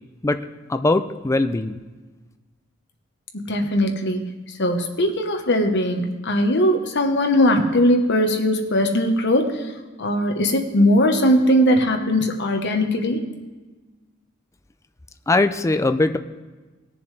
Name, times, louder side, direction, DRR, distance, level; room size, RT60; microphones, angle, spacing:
voice 1, 0.7-1.8 15.3-16.2, left 2 dB, 15° left, 9 dB, 0.4 m, -20 dB
voice 2, 3.5-4.3 4.6-9.6 10.0-13.2, equal, 60° left, 4 dB, 1.1 m, -19 dB
19.0 x 6.9 x 3.3 m, 1.3 s
head